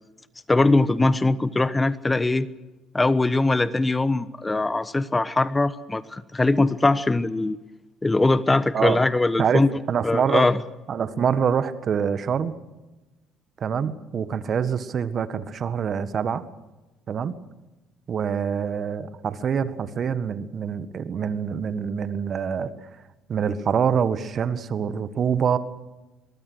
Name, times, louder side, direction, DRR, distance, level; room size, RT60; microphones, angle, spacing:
voice 1, 0.5-2.5 2.9-7.6 8.0-9.7 10.0-10.6, left 2 dB, 20° left, 16 dB, 1.1 m, -21 dB
voice 2, 9.4-10.4 10.9-12.5 13.6-16.4 17.1-17.4 18.1-22.7 23.3-25.6, right 7 dB, 45° right, 13 dB, 1.6 m, -25 dB
24.0 x 22.0 x 6.4 m, 1.1 s
hypercardioid pair, 60°, 0 cm